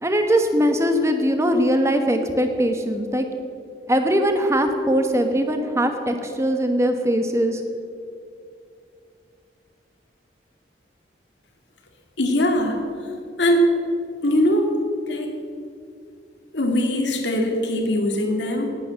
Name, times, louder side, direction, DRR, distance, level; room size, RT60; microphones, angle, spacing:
voice 1, 0.0-3.3 3.9-7.6, equal, 15° right, 6 dB, 1.2 m, -21 dB
voice 2, 12.2-12.8 13.4-13.7 14.2-14.7 15.1-15.3 16.5-18.7, equal, 85° left, 2 dB, 2.1 m, -21 dB
19.0 x 8.6 x 6.5 m, 2.4 s
head